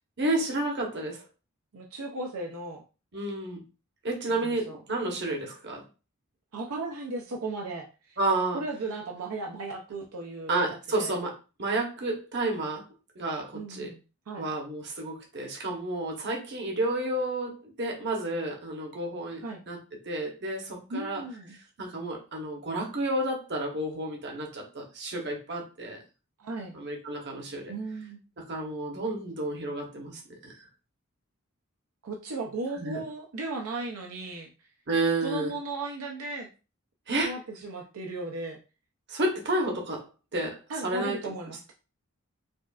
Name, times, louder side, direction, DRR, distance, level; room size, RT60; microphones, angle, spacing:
voice 1, 0.2-1.2 3.1-3.6 4.0-5.8 8.2-8.6 10.5-12.9 13.1-13.9 14.4-19.8 20.0-21.2 21.8-26.0 26.7-27.7 28.4-30.5 32.8-33.0 34.9-35.5 37.1-37.3 39.1-40.1 40.3-41.2, right 2 dB, 50° right, 1 dB, 1.0 m, -31 dB
voice 2, 1.7-2.8 4.3-4.8 6.5-8.2 8.5-10.5 10.9-11.2 13.5-14.4 19.4-19.6 20.9-21.6 26.4-26.8 27.7-28.2 32.0-34.7 35.2-36.5 37.2-38.6 40.7-41.7, right 2 dB, 80° right, 1 dB, 0.6 m, -36 dB
5.0 x 2.4 x 2.4 m, 0.32 s
head